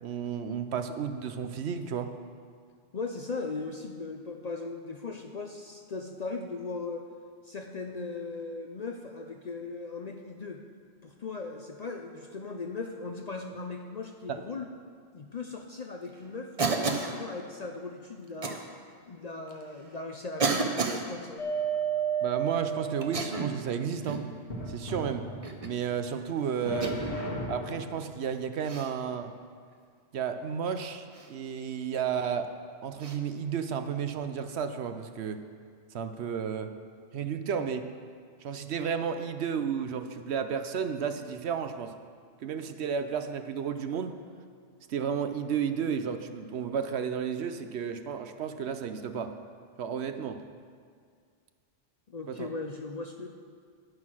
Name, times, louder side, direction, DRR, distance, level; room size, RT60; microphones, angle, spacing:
voice 1, 0.0-2.1 14.3-14.4 22.2-24.3 24.7-25.3 25.6-27.0 27.5-29.3 30.1-32.5 32.8-35.4 35.9-36.7 37.1-37.9 38.4-41.9 42.4-44.1 44.9-49.3 49.8-50.4 52.3-52.5, right 7 dB, 65° right, 8 dB, 0.9 m, -32 dB
voice 2, 2.9-7.1 7.4-10.6 11.0-14.7 15.1-18.6 19.1-21.4 52.1-53.3, left 3 dB, 45° left, 3 dB, 0.6 m, -38 dB
Cough, 16.6-17.2 18.4-18.6 19.5-19.6 20.4-21.0 23.0-23.6 24.0-24.3 25.4-25.8 26.8-27.2 28.6-28.9 31.1-31.3 33.0-33.2, right 4 dB, 35° right, 0.8 m, -30 dB
sound 1, 21.4-23.4 24.5-25.7 26.6-28.0, right 6 dB, 60° left, 1.8 m, -32 dB
9.6 x 9.5 x 6.2 m, 2.1 s
omnidirectional pair, 1.2 m